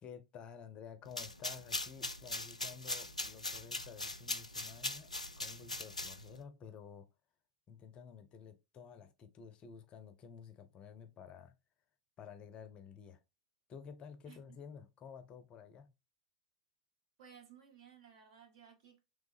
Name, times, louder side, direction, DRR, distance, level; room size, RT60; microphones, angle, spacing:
voice 1, 0.0-7.1 7.7-11.6 12.2-13.2 13.7-15.9, left 7 dB, 30° left, 0.5 m, -52 dB
sound 1, 1.1-6.4, left 2 dB, 85° left, 0.4 m, -41 dB
voice 2, 17.2-19.0, right 8 dB, 50° right, 1.2 m, -58 dB
3.3 x 3.1 x 3.4 m
figure-of-eight pair, 90°, 4 cm